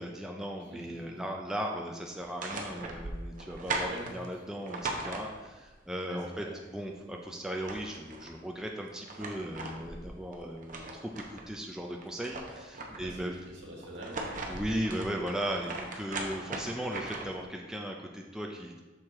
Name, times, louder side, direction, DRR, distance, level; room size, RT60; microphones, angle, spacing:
voice 1, 0.0-6.4 6.7-13.3 14.5-18.8, equal, 5° right, 0 dB, 0.3 m, -37 dB
voice 2, 0.7-1.2 3.8-4.1 6.0-6.5 12.8-14.6, right 1 dB, 70° right, -2 dB, 1.6 m, -45 dB
sound 1, 2.2-5.7 7.1-7.2 7.5-8.3 8.8-11.5 11.9-13.2 13.8-17.4, right 2 dB, 40° right, 0.7 m, -39 dB
6.4 x 4.5 x 3.6 m, 1.2 s
head